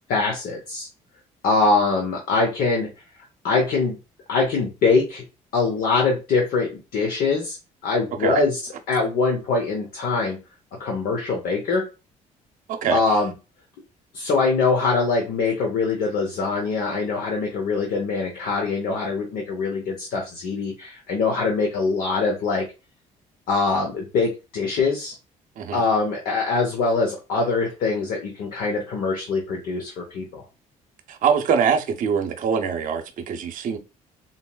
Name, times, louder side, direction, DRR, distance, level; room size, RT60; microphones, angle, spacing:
voice 1, 0.1-0.9 1.4-2.9 3.4-4.0 4.3-5.2 5.5-7.6 7.8-8.6 8.9-10.4 10.8-11.9 12.9-13.3 14.1-22.7 23.5-25.1 25.7-30.4, left 4 dB, 70° left, 0.8 m, -23 dB
voice 2, 12.7-13.0 25.6-25.8 31.1-33.8, right 7 dB, 60° right, 0.7 m, -23 dB
3.9 x 2.0 x 2.2 m
supercardioid pair, 70°, 15 cm